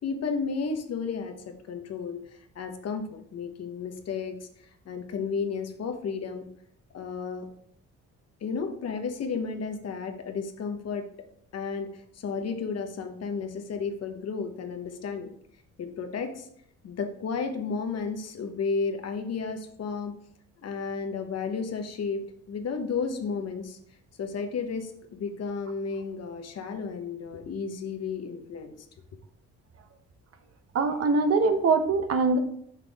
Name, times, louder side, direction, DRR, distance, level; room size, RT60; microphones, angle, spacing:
voice 1, 0.0-1.3 1.7-2.2 2.5-4.5 4.8-6.5 6.9-7.5 8.4-11.1 11.5-15.3 15.8-16.5 16.8-20.1 20.6-23.8 24.2-28.7, left 5 dB, 55° left, 6 dB, 1.0 m, -32 dB
voice 2, 30.7-32.4, right 4 dB, 50° right, 7 dB, 0.9 m, -23 dB
5.9 x 5.8 x 3.5 m, 0.68 s
cardioid pair, 90°, 30 cm